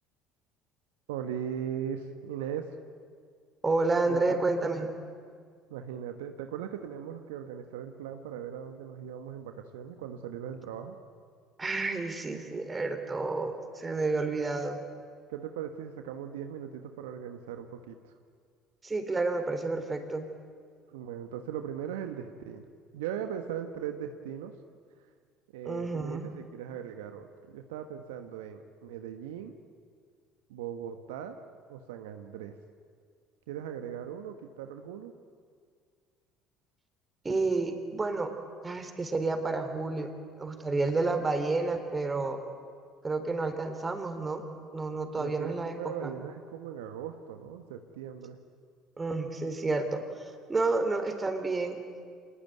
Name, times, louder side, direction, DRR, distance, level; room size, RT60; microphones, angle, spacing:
voice 1, 1.1-2.8 4.1-4.4 5.7-11.0 15.3-18.2 20.9-22.7 22.9-24.5 25.5-29.5 30.5-31.4 31.7-32.6 33.5-35.1 45.1-48.4, right 9 dB, 75° right, 7 dB, 1.2 m, -39 dB
voice 2, 3.6-4.9 11.6-14.8 18.8-20.3 25.7-26.3 37.2-38.3 38.6-40.1 40.4-42.4 43.0-44.4 44.7-46.1 49.0-50.0 50.5-51.8, right 3 dB, 25° right, 7 dB, 3.8 m, -30 dB
26.5 x 20.0 x 9.3 m, 2.1 s
hypercardioid pair, 60°, 0 cm